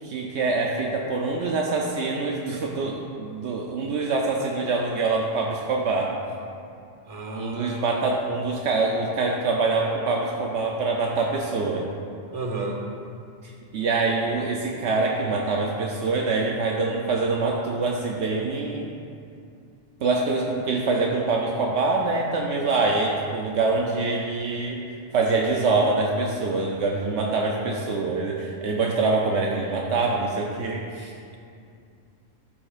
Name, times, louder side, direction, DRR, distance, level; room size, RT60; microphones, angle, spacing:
voice 1, 0.0-6.2 7.3-11.9 13.4-18.9 20.0-31.1, right 3 dB, 75° right, -1 dB, 0.9 m, -25 dB
voice 2, 7.1-7.8 12.3-12.8, right 2 dB, 35° right, -1 dB, 0.9 m, -32 dB
12.5 x 5.8 x 2.4 m, 2.4 s
omnidirectional pair, 1.2 m